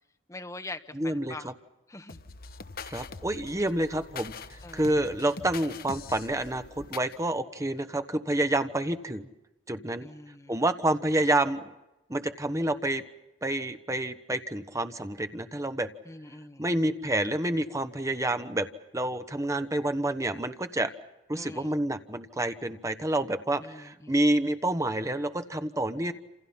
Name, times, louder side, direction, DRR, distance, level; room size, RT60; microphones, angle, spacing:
voice 1, 0.3-1.5 1.9-2.2 4.6-5.1 10.0-10.6 16.0-16.7 21.4-21.7 23.6-24.2, left 2 dB, 15° left, 8 dB, 1.3 m, -43 dB
voice 2, 0.9-1.5 2.9-4.3 4.7-9.3 9.7-10.1 10.5-11.6 12.1-13.0 13.4-15.9 16.6-18.7 18.9-20.9 21.3-26.1, right 1 dB, 15° right, 9 dB, 1.2 m, -28 dB
sound 1, 2.1-7.2, left 4 dB, 55° left, 1.0 m, -43 dB
28.0 x 28.0 x 5.7 m, 0.96 s
head